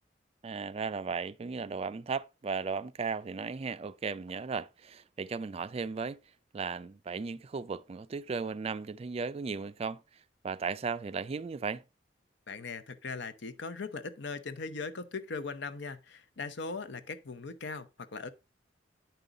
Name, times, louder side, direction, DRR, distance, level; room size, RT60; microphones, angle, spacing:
voice 1, 0.4-6.2 6.5-10.0 10.4-11.8, right 5 dB, 35° right, 0.3 m, -36 dB
voice 2, 12.5-18.3, left 4 dB, 65° left, 0.7 m, -39 dB
9.1 x 5.4 x 3.7 m
head